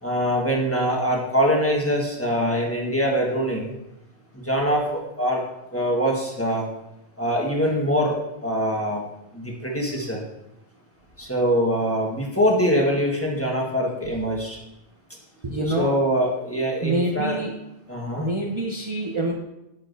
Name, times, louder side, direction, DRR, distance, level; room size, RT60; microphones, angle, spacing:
voice 1, 0.0-3.7 4.4-5.4 5.7-6.6 7.2-8.2 8.4-9.0 9.3-10.2 11.2-14.6 15.7-17.4 17.9-18.3, equal, 15° left, -2 dB, 1.3 m, -23 dB
voice 2, 15.4-16.0 16.8-17.5 18.2-19.3, right 2 dB, 30° right, -1 dB, 0.7 m, -26 dB
9.5 x 6.9 x 2.6 m, 0.89 s
omnidirectional pair, 1.1 m